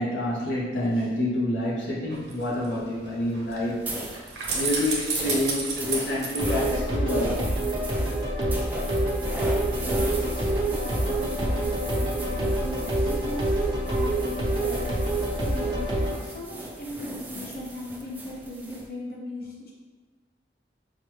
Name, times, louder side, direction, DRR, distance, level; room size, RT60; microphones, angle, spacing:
voice 1, 0.0-3.9 4.6-7.4, left 1 dB, 85° left, -5 dB, 0.7 m, -28 dB
sound 1, 2.1-7.4 7.8-7.9, right 4 dB, 70° right, 0.9 m, -33 dB
sound 2, 3.8-18.9, right 1 dB, 10° right, 0.4 m, -38 dB
sound 3, 6.4-16.1, right 1 dB, 25° right, 0.8 m, -26 dB
voice 2, 9.9-13.5 13.8-15.1 15.5-19.7, equal, 55° left, -3 dB, 0.9 m, -38 dB
5.6 x 2.1 x 3.1 m, 1.3 s
head